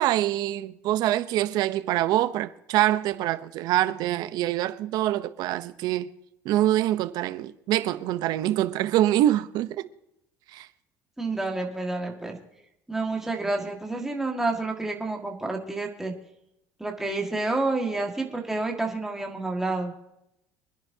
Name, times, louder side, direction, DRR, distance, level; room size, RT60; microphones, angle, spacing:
voice 1, 0.0-6.1 6.4-9.9 10.5-10.7, right 13 dB, 60° right, 0.8 m, -25 dB
voice 2, 11.2-12.4 12.9-16.1 16.8-19.9, right 2 dB, 5° right, 1.9 m, -29 dB
25.5 x 10.5 x 2.8 m
cardioid pair, 125°, 8 cm